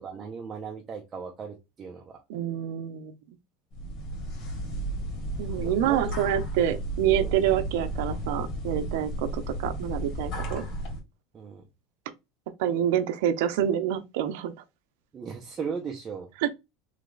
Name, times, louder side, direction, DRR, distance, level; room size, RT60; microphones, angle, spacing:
voice 1, 0.0-2.2 5.5-6.1 7.2-7.5 11.3-11.6 15.1-16.3, right 6 dB, 25° right, 0.8 m, -37 dB
voice 2, 2.3-3.1 5.4-10.7 12.6-14.5 16.4-16.5, right 10 dB, 75° right, 0.6 m, -27 dB
sound 1, 3.7-11.0, right 1 dB, 45° left, 2.2 m, -33 dB
3.3 x 3.0 x 3.8 m
supercardioid pair, 135°, 0 cm